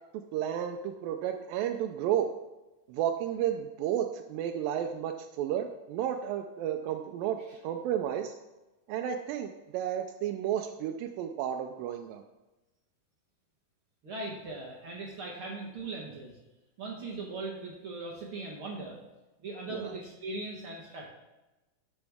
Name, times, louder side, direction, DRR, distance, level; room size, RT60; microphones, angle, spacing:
voice 1, 0.3-2.3 2.9-8.3 8.9-12.2 19.7-19.9, right 10 dB, 90° right, 4 dB, 2.3 m, -32 dB
voice 2, 14.0-16.3 16.8-19.0 19.4-21.1, right 3 dB, 55° right, -2 dB, 1.7 m, -39 dB
12.0 x 7.2 x 3.5 m, 1.0 s
omnidirectional pair, 3.9 m